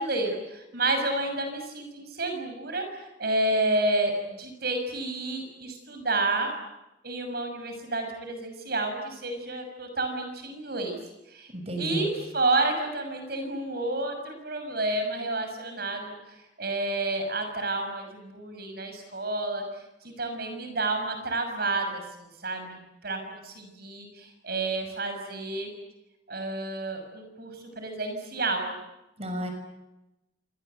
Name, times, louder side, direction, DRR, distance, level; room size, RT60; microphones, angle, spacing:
voice 1, 0.0-6.5 7.0-11.0 11.3-11.5 11.8-19.6 20.0-25.7 26.3-28.7, right 2 dB, 60° right, 5 dB, 6.2 m, -30 dB
voice 2, 11.5-12.1 29.2-29.5, equal, 35° right, 5 dB, 6.3 m, -32 dB
28.0 x 26.0 x 8.2 m, 0.94 s
head